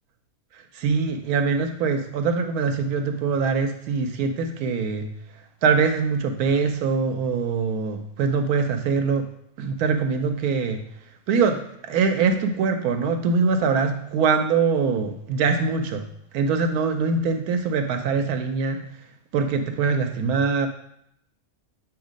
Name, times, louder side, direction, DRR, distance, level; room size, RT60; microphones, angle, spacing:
voice 1, 0.5-5.1 5.6-9.3 9.6-10.8 11.3-16.1 16.3-19.0 19.3-20.7, right 5 dB, 85° right, 7 dB, 1.1 m, -23 dB
7.2 x 3.0 x 5.0 m, 0.73 s
omnidirectional pair, 1.5 m